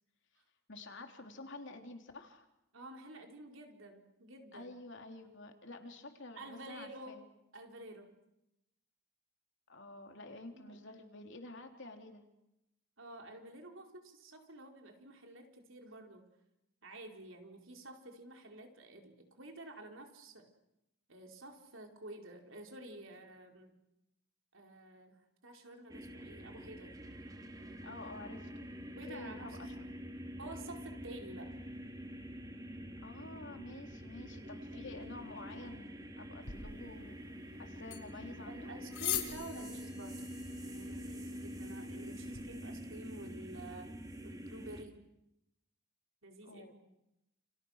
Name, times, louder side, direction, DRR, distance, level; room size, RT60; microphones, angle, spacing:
voice 1, 0.7-2.5 4.5-7.2 9.7-12.2 27.8-28.7 29.1-29.8 33.0-37.2 37.6-38.7 46.4-46.7, left 2 dB, 55° left, 4 dB, 3.6 m, -49 dB
voice 2, 2.7-4.7 6.4-7.2 7.5-8.2 10.5-10.8 13.0-16.3 16.8-20.5 21.1-23.8 24.5-27.0 29.0-29.9 30.4-31.6 34.3-34.4 34.7-34.9 38.5-40.3 40.6-43.9 44.2-45.0 46.2-46.7, right 2 dB, 60° right, 3 dB, 4.5 m, -50 dB
sound 1, 25.9-44.8, equal, 15° right, 2.5 m, -46 dB
sound 2, 36.4-42.4, left 11 dB, 80° left, 5.3 m, -44 dB
30.0 x 29.5 x 6.6 m, 0.87 s
head